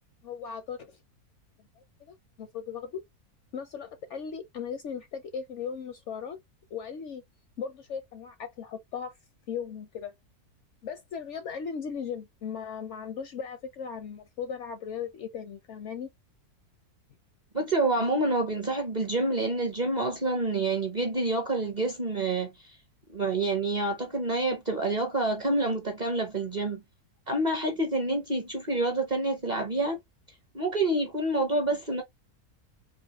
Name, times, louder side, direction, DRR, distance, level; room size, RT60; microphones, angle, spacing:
voice 1, 0.2-1.0 2.0-3.0 3.5-6.4 6.7-7.2 7.6-9.1 9.5-10.1 10.8-16.1, left 7 dB, 65° left, 0.7 m, -37 dB
voice 2, 17.5-22.7 23.1-26.8 27.3-30.0 30.5-32.0, right 2 dB, 40° right, 0.6 m, -28 dB
4.0 x 2.4 x 2.9 m
omnidirectional pair, 1.6 m